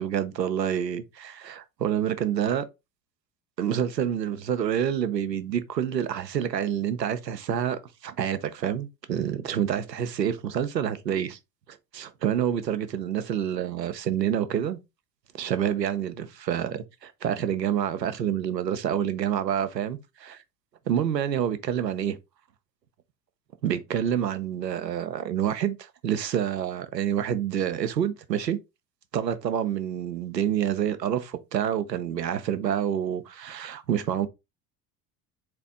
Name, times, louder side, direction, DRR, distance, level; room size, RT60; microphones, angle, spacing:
voice 1, 0.0-2.6 3.6-11.4 11.7-14.8 15.4-20.4 20.9-22.2 23.6-28.6 29.1-34.3, right 9 dB, 90° right, 0.6 m, -28 dB
4.2 x 2.9 x 3.4 m
figure-of-eight pair, 65°, 48 cm